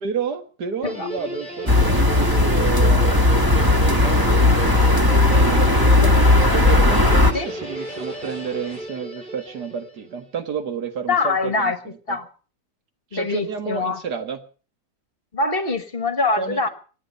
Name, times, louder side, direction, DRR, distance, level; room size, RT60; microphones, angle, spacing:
voice 1, 0.0-6.2 6.5-12.2 13.1-14.4 16.4-16.7, right 6 dB, 65° right, 8 dB, 2.2 m, -31 dB
Guitar, 0.8-10.2, equal, 5° left, 5.5 m, -33 dB
sound 1, 1.7-7.3, left 2 dB, 15° right, 1.2 m, -16 dB
sound 2, 3.6-8.8, right 1 dB, 40° right, 7.8 m, -43 dB
voice 2, 11.1-11.8 12.1-12.3 13.1-14.0 15.3-16.7, left 3 dB, 35° left, 10 dB, 1.5 m, -23 dB
25.5 x 8.9 x 5.4 m, 0.39 s
omnidirectional pair, 1.9 m